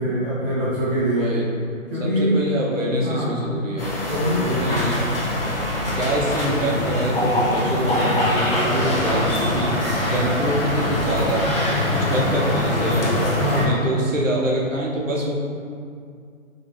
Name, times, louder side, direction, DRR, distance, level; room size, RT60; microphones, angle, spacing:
voice 1, 0.0-1.3 1.9-2.3 2.9-3.4 4.0-4.8 13.3-13.8, equal, 10° right, -16 dB, 0.5 m, -23 dB
voice 2, 1.1-1.5 2.0-3.9 4.6-5.0 5.9-9.7 10.0-13.1 13.6-15.4, right 1 dB, 70° right, -3 dB, 1.1 m, -25 dB
sound 1, 3.8-13.7, left 1 dB, 45° left, 0.9 m, -23 dB
5.4 x 2.7 x 3.0 m, 2.3 s
figure-of-eight pair, 140°, 40 cm